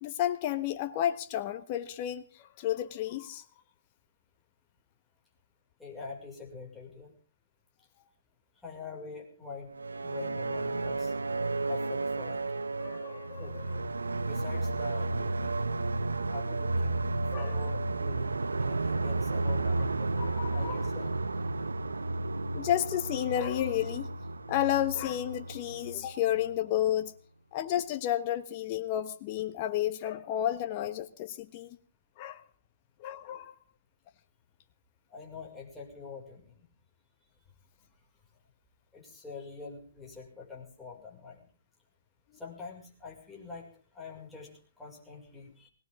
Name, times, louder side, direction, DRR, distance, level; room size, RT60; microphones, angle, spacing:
voice 1, 0.0-3.4 12.8-13.8 17.3-17.6 20.1-20.9 22.5-24.1 24.5-27.1 27.5-31.8 32.2-32.4 33.0-33.5, left 12 dB, 40° left, 8 dB, 1.3 m, -31 dB
voice 2, 5.8-7.1 8.6-9.7 10.0-11.1 11.7-12.7 13.4-13.6 14.2-15.5 16.3-17.0 17.3-18.3 18.6-19.8 20.5-21.4 33.3-33.4 35.1-36.6 38.9-41.4 42.3-43.7 43.9-44.5 44.8-45.7, left 5 dB, 5° left, -3 dB, 6.1 m, -45 dB
sound 1, 9.7-26.6, right 3 dB, 85° right, 1.0 m, -32 dB
20.0 x 18.5 x 3.8 m, 0.38 s
hypercardioid pair, 130°, 0 cm